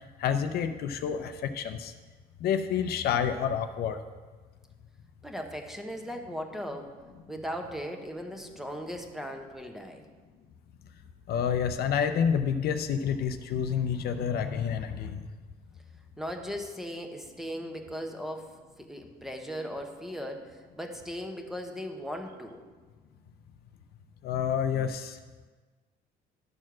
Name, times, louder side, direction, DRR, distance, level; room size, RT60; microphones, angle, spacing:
voice 1, 0.2-1.9 2.4-4.0 11.3-15.3 24.2-25.2, left 7 dB, 65° left, 8 dB, 0.6 m, -28 dB
voice 2, 5.2-6.9 7.3-10.0 16.2-18.5 18.8-22.6, equal, ahead, 4 dB, 1.0 m, -38 dB
12.0 x 4.4 x 6.1 m, 1.4 s
cardioid pair, 110°, 17 cm